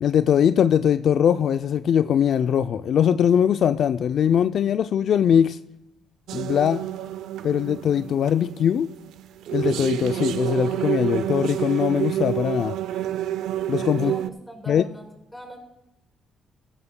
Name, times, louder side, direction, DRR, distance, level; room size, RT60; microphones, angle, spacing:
voice 1, 0.0-5.6 6.3-6.8 7.4-8.9 9.5-12.8 13.7-14.1 14.7-14.8, left 8 dB, 65° left, 0.4 m, -21 dB
sound 1, 6.3-14.3, right 12 dB, 85° right, 0.4 m, -28 dB
voice 2, 13.9-15.1 15.3-15.6, equal, 5° left, 4.8 m, -40 dB
16.0 x 13.5 x 2.2 m
cardioid pair, 90°, 0 cm